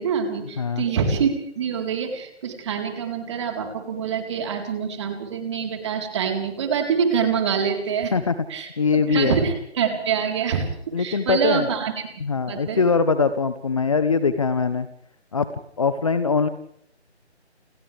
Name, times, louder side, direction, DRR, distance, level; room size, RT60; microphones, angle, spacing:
voice 1, 0.0-8.1 8.5-11.9 12.5-12.8, right 6 dB, 25° right, 3 dB, 4.2 m, -25 dB
voice 2, 8.8-9.4 10.9-11.7 12.2-14.9 15.3-15.5 15.8-16.5, left 5 dB, 30° left, 12 dB, 1.0 m, -22 dB
30.0 x 28.0 x 3.5 m, 0.70 s
figure-of-eight pair, 160°, 34 cm